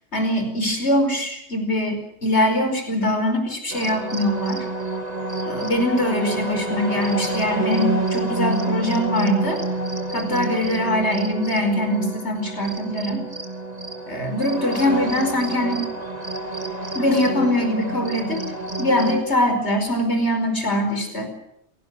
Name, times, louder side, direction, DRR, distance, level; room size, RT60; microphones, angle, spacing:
voice 1, 0.1-4.7 5.5-9.6 10.1-13.3 14.1-15.9 16.9-18.4 18.8-21.3, left 1 dB, 60° left, 5 dB, 5.3 m, -22 dB
sound 1, 3.7-19.2, right 2 dB, 35° right, 3.0 m, -28 dB
28.5 x 18.5 x 6.5 m, 0.77 s
omnidirectional pair, 1.2 m